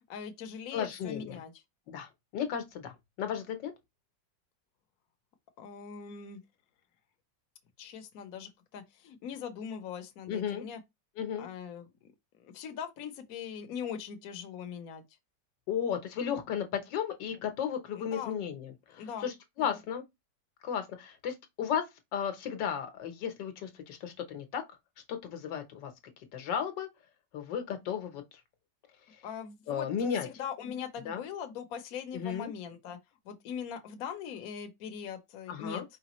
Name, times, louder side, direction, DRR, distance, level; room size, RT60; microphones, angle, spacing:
voice 1, 0.1-1.5 5.6-6.4 7.8-10.8 11.4-12.1 12.4-15.0 17.9-18.4 18.9-19.3 19.7-19.8 29.2-33.0 33.2-35.8, left 7 dB, 60° left, 1.2 m, -41 dB
voice 2, 0.7-1.4 1.9-3.7 10.3-10.6 11.2-11.5 15.7-20.0 20.6-21.8 22.1-24.6 25.1-25.9 26.3-26.9 27.3-28.2 29.7-30.3 31.0-31.2 32.1-32.5 35.5-35.8, left 8 dB, 85° left, 1.6 m, -34 dB
5.0 x 3.3 x 3.0 m
omnidirectional pair, 1.9 m